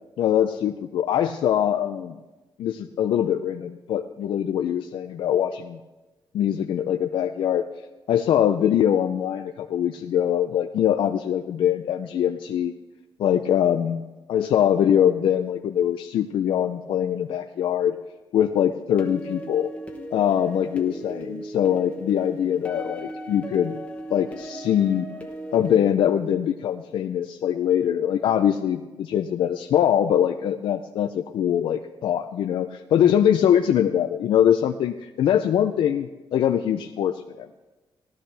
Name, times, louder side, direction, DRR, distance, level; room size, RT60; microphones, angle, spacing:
voice 1, 0.2-2.2 2.6-5.8 6.3-7.6 8.1-12.7 13.2-18.0 18.3-19.7 20.1-23.8 24.1-25.1 25.5-37.6, left 10 dB, 70° left, 6 dB, 0.5 m, -23 dB
sound 1, 19.0-25.8, right 1 dB, 15° left, 1.1 m, -37 dB
17.0 x 12.0 x 3.4 m, 1.1 s
wide cardioid pair, 175°, 9 cm